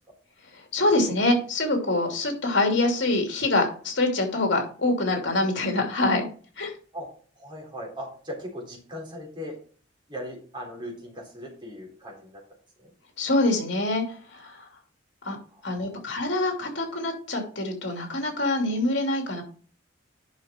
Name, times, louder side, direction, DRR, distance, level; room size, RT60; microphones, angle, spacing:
voice 1, 0.5-6.3 6.6-6.7 13.2-14.7 15.2-15.4 15.6-19.4, left 2 dB, 65° left, 2 dB, 2.9 m, -25 dB
voice 2, 7.4-9.6 10.1-12.4 12.8-12.9 15.5-16.0, equal, 25° right, -1 dB, 3.5 m, -39 dB
10.0 x 5.7 x 4.4 m, 0.43 s
head